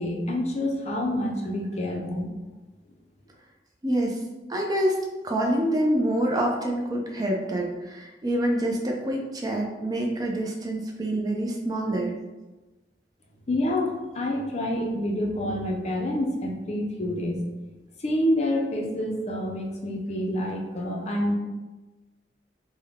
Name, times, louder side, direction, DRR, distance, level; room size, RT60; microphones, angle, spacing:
voice 1, 0.0-2.3 13.5-17.4 18.0-21.3, left 1 dB, 40° left, 1 dB, 0.5 m, -27 dB
voice 2, 3.8-4.2 4.5-5.0 5.2-12.1, right 1 dB, 20° right, 0 dB, 0.4 m, -26 dB
3.5 x 2.1 x 3.4 m, 1.2 s
head